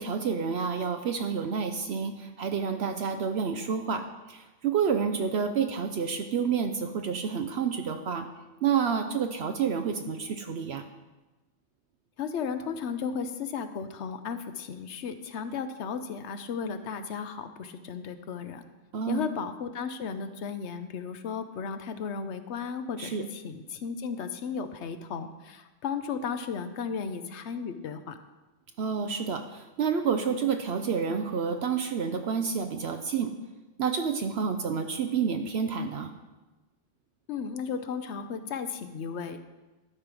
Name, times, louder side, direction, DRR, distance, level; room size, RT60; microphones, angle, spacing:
voice 1, 0.0-8.3 8.6-10.9 18.9-19.3 23.0-23.3 28.8-33.4 33.8-36.1, right 6 dB, 65° right, 7 dB, 0.8 m, -29 dB
voice 2, 12.2-18.6 19.1-28.2 37.3-39.6, left 6 dB, 70° left, 10 dB, 1.0 m, -35 dB
12.0 x 5.0 x 6.1 m, 1.1 s
omnidirectional pair, 1.2 m